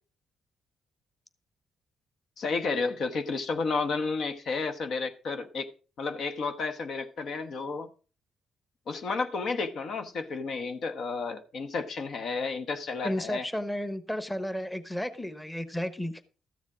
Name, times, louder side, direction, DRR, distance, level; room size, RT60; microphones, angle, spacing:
voice 1, 2.4-5.7 6.0-7.9 8.9-13.5, left 4 dB, 60° left, 1.0 m, -32 dB
voice 2, 13.0-16.1, equal, 10° left, 1.1 m, -33 dB
13.5 x 7.2 x 4.9 m
cardioid pair, 90°, 0 cm